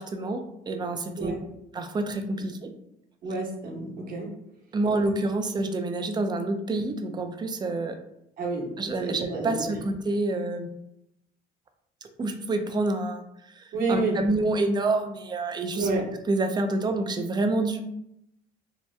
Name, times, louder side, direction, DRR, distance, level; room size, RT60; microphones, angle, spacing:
voice 1, 0.0-1.3 1.7-2.7 4.7-8.0 8.8-10.7 12.2-13.2 13.6-15.9 16.3-17.8, right 2 dB, 25° right, 6 dB, 0.4 m, -27 dB
voice 2, 3.2-4.3 8.4-8.7 9.0-9.7 13.7-14.2 15.7-16.1, right 3 dB, 55° right, -2 dB, 0.9 m, -29 dB
2.8 x 2.2 x 3.2 m, 0.79 s
cardioid pair, 110°, 17 cm